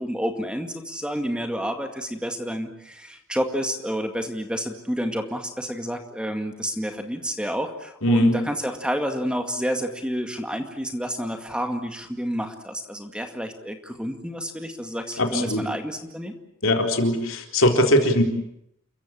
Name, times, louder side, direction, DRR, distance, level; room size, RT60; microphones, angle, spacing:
voice 1, 0.0-16.3, equal, 5° right, 5 dB, 2.1 m, -29 dB
voice 2, 8.0-8.3 15.2-15.7 16.6-18.2, left 1 dB, 80° left, 3 dB, 4.0 m, -20 dB
29.0 x 15.5 x 10.0 m, 0.77 s
head